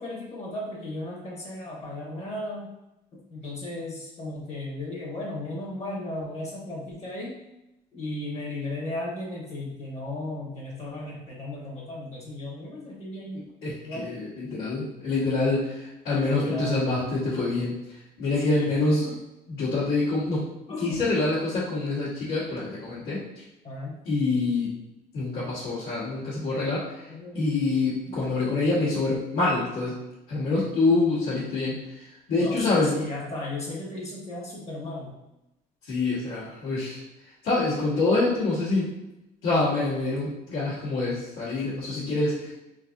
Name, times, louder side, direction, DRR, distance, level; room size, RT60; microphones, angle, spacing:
voice 1, 0.0-2.7 3.3-7.4 7.9-13.4 13.8-14.1 16.2-16.9 18.5-18.7 19.0-19.1 20.7-21.0 23.6-23.9 27.1-28.0 32.4-35.1, left 1 dB, 40° left, -3 dB, 1.1 m, -35 dB
voice 2, 13.6-17.7 18.2-19.1 19.5-20.5 20.8-23.2 24.0-24.7 25.1-26.9 27.3-29.9 30.3-33.0 35.9-37.0 37.4-38.9 39.4-42.5, left 3 dB, 80° left, -13 dB, 1.4 m, -26 dB
3.9 x 2.7 x 2.5 m, 0.93 s
cardioid pair, 110°, 17 cm